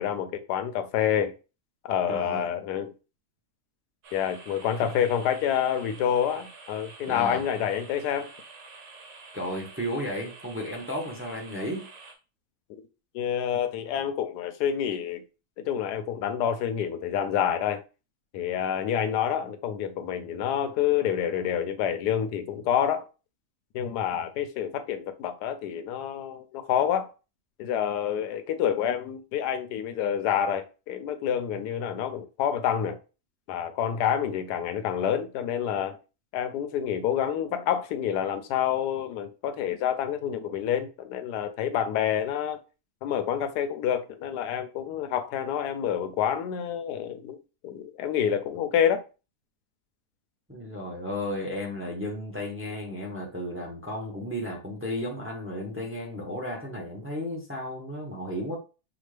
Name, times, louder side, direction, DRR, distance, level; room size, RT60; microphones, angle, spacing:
voice 1, 0.0-1.3 1.8-2.9 4.1-8.3 13.1-15.2 15.6-17.8 18.3-23.1 23.7-27.1 27.6-33.0 33.5-36.0 36.3-42.6 43.0-47.4 47.6-49.0, left 9 dB, 85° left, 1.2 m, -28 dB
voice 2, 2.1-2.4 4.8-4.9 7.0-7.4 9.3-11.9 50.5-58.6, left 1 dB, 15° right, 0.5 m, -34 dB
sound 1, 4.0-12.1, right 4 dB, 75° right, 1.4 m, -48 dB
5.9 x 2.3 x 3.2 m
omnidirectional pair, 1.7 m